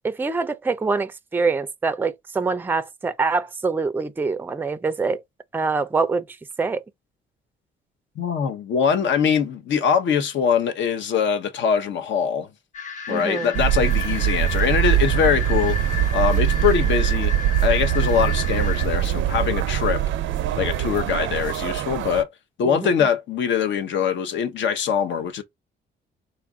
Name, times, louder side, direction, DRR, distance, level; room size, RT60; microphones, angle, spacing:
voice 1, 0.0-5.2 5.5-6.2 6.6-6.8 13.1-13.5 22.6-22.9, right 4 dB, 10° right, 0.4 m, -24 dB
voice 2, 8.2-12.5 13.1-17.3 17.6-20.0 20.6-22.3 22.6-25.4, left 7 dB, 70° left, 0.8 m, -23 dB
sound 1, 12.7-18.9, left 6 dB, 40° left, 0.9 m, -32 dB
sound 2, 13.5-22.2, right 12 dB, 75° right, 0.5 m, -22 dB
4.1 x 2.4 x 3.6 m
cardioid pair, 90°, 20 cm